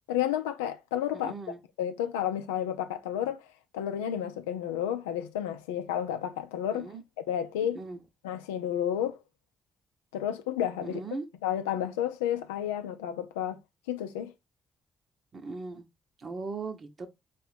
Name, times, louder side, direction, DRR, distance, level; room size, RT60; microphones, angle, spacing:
voice 1, 0.1-1.3 1.8-3.4 3.7-6.9 7.3-7.8 8.2-9.2 10.1-11.0 11.4-13.6 13.9-14.3, left 10 dB, 85° left, 0.4 m, -31 dB
voice 2, 1.1-1.6 6.7-7.0 7.7-8.0 10.8-11.3 15.3-15.8 16.2-17.1, right 3 dB, 50° right, 1.0 m, -38 dB
4.6 x 2.6 x 3.5 m
hypercardioid pair, 45°, 0 cm